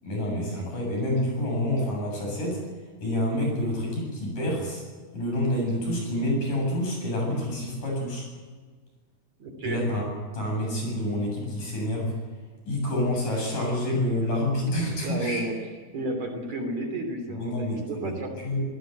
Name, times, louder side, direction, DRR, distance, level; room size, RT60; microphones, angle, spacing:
voice 1, 0.0-2.6 3.0-4.8 5.1-8.3 9.6-10.0 10.3-12.1 12.7-15.4 17.3-18.6, left 1 dB, 55° left, 0 dB, 9.2 m, -28 dB
voice 2, 9.4-9.8 15.0-15.5 15.9-18.5, right 2 dB, 50° right, 4 dB, 4.1 m, -32 dB
26.5 x 17.5 x 8.0 m, 1.5 s
omnidirectional pair, 4.5 m